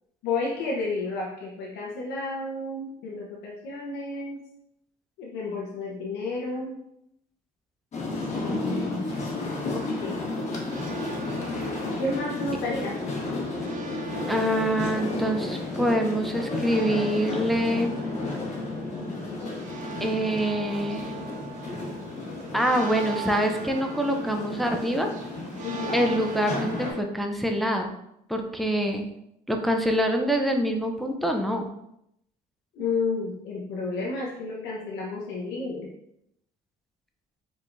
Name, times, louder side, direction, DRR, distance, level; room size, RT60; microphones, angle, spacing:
voice 1, 0.2-4.4 5.2-6.8 8.2-9.1 9.7-10.3 12.0-13.0 25.6-26.0 32.7-35.9, left 3 dB, 90° left, -4 dB, 0.9 m, -31 dB
sound 1, 7.9-26.9, left 2 dB, 40° left, 1.3 m, -33 dB
sound 2, 10.7-27.0, right 4 dB, 45° right, 0.6 m, -41 dB
voice 2, 14.3-17.9 20.0-21.1 22.5-25.1 25.9-27.9 28.3-29.0 29.5-31.7, equal, ahead, 3 dB, 0.5 m, -25 dB
4.8 x 3.7 x 2.5 m, 0.78 s
cardioid pair, 110°, 17 cm